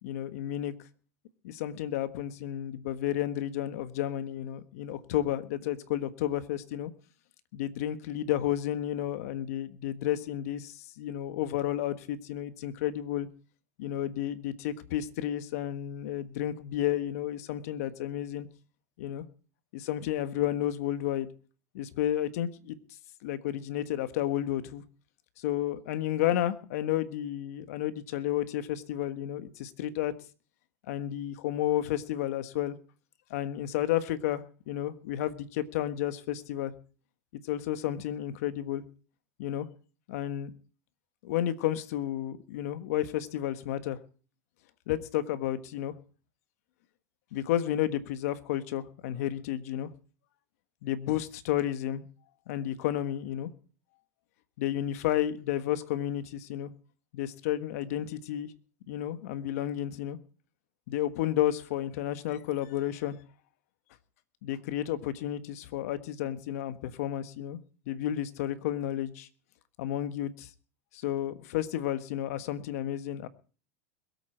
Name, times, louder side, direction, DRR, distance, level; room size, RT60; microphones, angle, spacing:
voice 1, 0.0-0.7 1.4-6.9 7.5-13.3 13.8-18.5 19.0-19.2 19.7-21.3 21.7-22.8 23.2-24.8 25.4-30.1 30.9-32.8 33.3-36.7 37.5-38.8 39.4-39.7 40.1-40.5 41.2-44.0 44.9-45.9 47.3-49.9 50.8-52.1 52.5-53.5 54.6-56.7 57.1-58.5 58.9-60.2 60.9-63.2 64.4-67.6 67.9-69.3 69.8-70.5 70.9-73.3, left 12 dB, 70° left, 11 dB, 1.5 m, -31 dB
22.0 x 8.6 x 4.5 m, 0.39 s
supercardioid pair, 120°, 8 cm